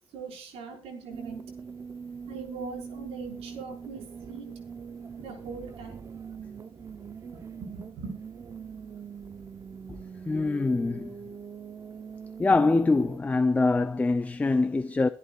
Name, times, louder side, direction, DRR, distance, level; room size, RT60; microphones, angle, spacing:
voice 1, 0.1-1.4 2.3-4.5 5.2-6.1 7.6-8.1, right 4 dB, 90° right, 5.7 m, -41 dB
sound 1, 1.1-13.2, right 6 dB, 30° right, 0.8 m, -42 dB
voice 2, 10.3-11.1 12.4-15.1, left 3 dB, 15° left, 0.6 m, -24 dB
24.0 x 11.0 x 2.5 m
cardioid pair, 135°, 10 cm